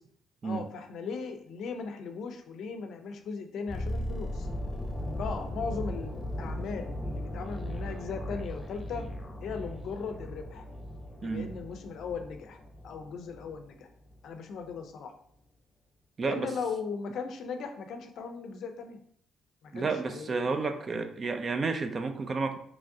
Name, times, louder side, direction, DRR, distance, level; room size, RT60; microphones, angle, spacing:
voice 1, 0.4-4.5 5.2-9.1 9.4-10.6 11.2-12.6 12.8-13.9 14.2-15.1 16.2-19.0 19.6-21.0, left 5 dB, 75° left, 7 dB, 0.4 m, -38 dB
sound 1, 3.7-13.7 13.9-14.2, left 1 dB, 25° left, 0.7 m, -37 dB
voice 2, 11.2-11.5 16.2-16.5 19.7-22.6, right 4 dB, 40° right, 8 dB, 0.4 m, -31 dB
3.5 x 3.1 x 2.6 m, 0.65 s
cardioid pair, 90°, 0 cm